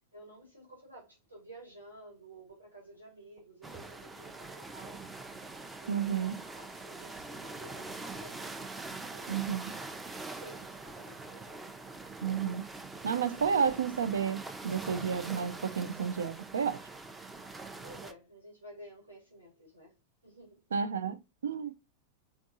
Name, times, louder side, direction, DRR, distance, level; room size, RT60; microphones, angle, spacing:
voice 1, 0.1-5.1 5.8-9.4 10.2-11.8 17.8-19.9 20.2-20.7, right 1 dB, 85° right, 2.2 m, -52 dB
sound 1, 3.6-18.1, right 3 dB, 10° right, 0.5 m, -44 dB
voice 2, 5.9-6.3 9.3-9.7 12.2-12.7 13.0-16.8 20.7-21.2 21.4-21.7, right 7 dB, 70° right, 0.4 m, -31 dB
4.5 x 3.5 x 2.6 m
figure-of-eight pair, 90°, 0 cm